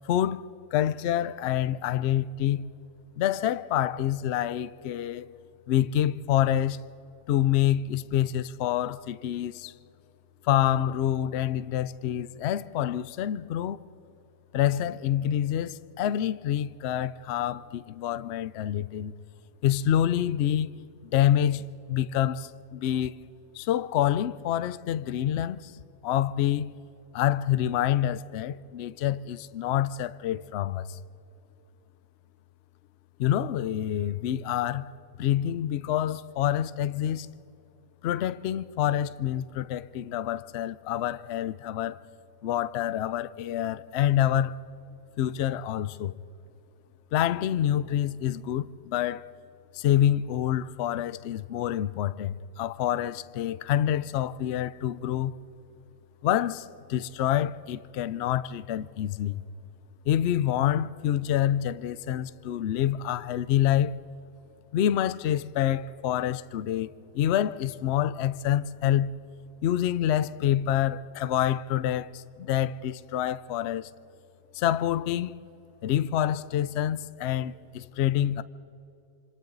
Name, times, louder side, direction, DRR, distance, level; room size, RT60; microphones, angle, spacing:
voice 1, 0.0-2.7 3.2-5.3 5.7-6.8 7.3-9.7 10.4-13.8 14.5-19.1 19.6-23.1 23.5-25.7 26.0-26.7 27.1-31.0 33.2-34.9 35.2-37.3 38.0-42.0 42.4-44.5 45.2-46.1 47.1-49.3 49.7-55.4 56.2-59.4 60.1-63.9 64.7-69.2 69.6-73.9 74.5-75.4 75.8-78.4, left 11 dB, 85° left, 0.5 m, -27 dB
27.0 x 26.0 x 4.0 m
omnidirectional pair, 1.8 m